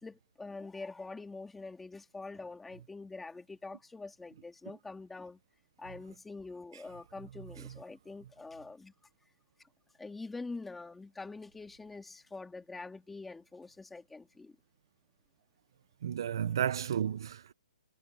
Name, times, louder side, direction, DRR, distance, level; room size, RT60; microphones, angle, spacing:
voice 1, 0.0-5.4 5.8-8.9 10.0-14.6, left 3 dB, 5° left, 2.3 m, -45 dB
voice 2, 16.0-17.5, right 9 dB, 40° right, 0.7 m, -32 dB
hypercardioid pair, 175°, 4 cm